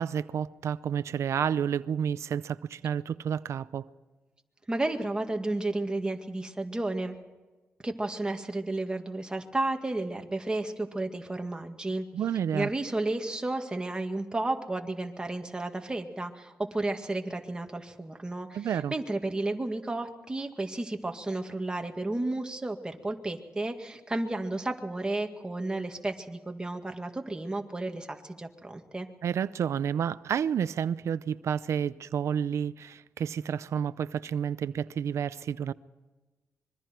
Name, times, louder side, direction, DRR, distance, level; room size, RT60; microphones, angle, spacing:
voice 1, 0.0-3.9 12.1-12.7 18.5-18.9 29.2-35.7, right 8 dB, 80° right, 0.6 m, -30 dB
voice 2, 4.7-7.2 7.8-12.1 12.5-29.1, right 2 dB, 15° right, 2.1 m, -32 dB
25.5 x 23.5 x 4.5 m
cardioid pair, 105°, 5 cm